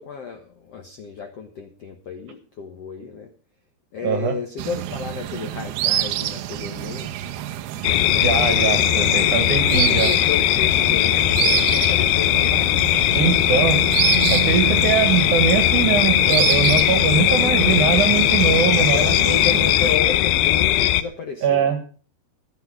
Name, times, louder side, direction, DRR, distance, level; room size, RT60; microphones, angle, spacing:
voice 1, 0.0-3.3 3.9-7.3 9.7-12.7 17.2-17.5 18.8-21.8, left 5 dB, 65° left, 4 dB, 1.6 m, -32 dB
voice 2, 4.0-4.3 8.1-10.1 13.1-13.8 14.3-19.1 21.4-21.8, right 6 dB, 55° right, 8 dB, 2.7 m, -21 dB
sound 1, 4.6-20.0, right 13 dB, 85° right, 2.8 m, -27 dB
sound 2, 7.8-21.0, left 14 dB, 80° left, 2.5 m, -19 dB
14.5 x 10.5 x 4.8 m, 0.40 s
omnidirectional pair, 4.7 m